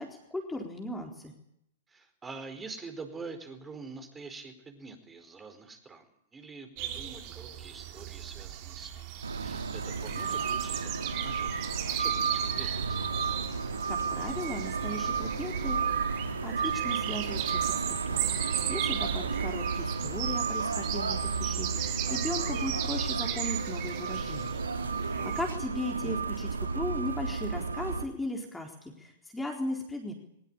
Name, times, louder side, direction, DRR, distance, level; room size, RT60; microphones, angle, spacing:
voice 1, 0.0-1.3 13.6-15.9 16.1-18.2 18.7-24.6 25.0-30.1, left 1 dB, 5° left, 2 dB, 4.1 m, -37 dB
voice 2, 1.9-13.1 19.3-19.6 25.2-25.6, right 4 dB, 15° right, 7 dB, 4.6 m, -46 dB
sound 1, 6.8-25.5, right 11 dB, 40° right, 3.4 m, -37 dB
sound 2, 9.2-28.0, right 5 dB, 75° right, 2.3 m, -32 dB
22.5 x 21.5 x 8.9 m, 0.73 s
figure-of-eight pair, 105°, 0 cm